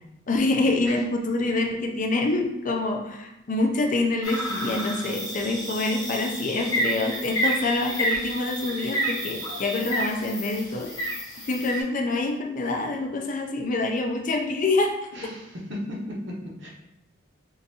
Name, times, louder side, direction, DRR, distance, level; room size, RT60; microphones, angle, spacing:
voice 1, 0.3-11.1 11.5-14.9, left 2 dB, 40° left, 3 dB, 0.4 m, -26 dB
sound 1, 4.2-11.8, right 1 dB, 20° left, 0.8 m, -30 dB
voice 2, 15.1-16.7, left 1 dB, 65° right, -3 dB, 0.9 m, -35 dB
3.8 x 2.5 x 2.7 m, 0.89 s
head